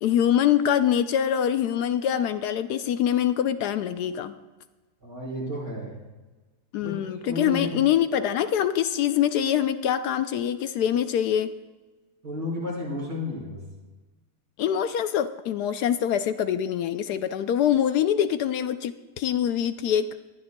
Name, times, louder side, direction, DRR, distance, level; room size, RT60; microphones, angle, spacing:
voice 1, 0.0-4.3 6.7-11.5 14.6-20.1, left 10 dB, 75° left, 11 dB, 1.1 m, -24 dB
voice 2, 5.0-6.0 6.8-7.7 12.2-13.6, left 1 dB, 60° right, -3 dB, 5.5 m, -32 dB
20.0 x 13.5 x 2.2 m, 1.2 s
omnidirectional pair, 1.8 m